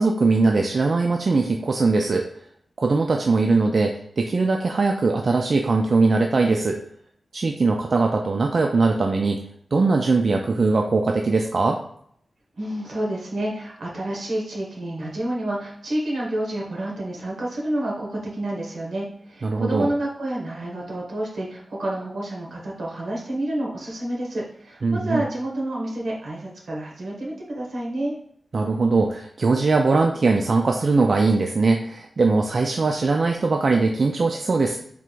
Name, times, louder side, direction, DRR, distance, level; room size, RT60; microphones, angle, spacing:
voice 1, 0.0-2.3 2.8-6.8 7.3-9.4 9.7-11.8 19.4-19.9 24.8-25.2 28.5-34.8, right 3 dB, 50° right, 2 dB, 0.3 m, -21 dB
voice 2, 12.6-28.1, right 1 dB, 80° right, -3 dB, 1.4 m, -29 dB
3.5 x 2.5 x 4.5 m, 0.67 s
wide cardioid pair, 120°, 0 cm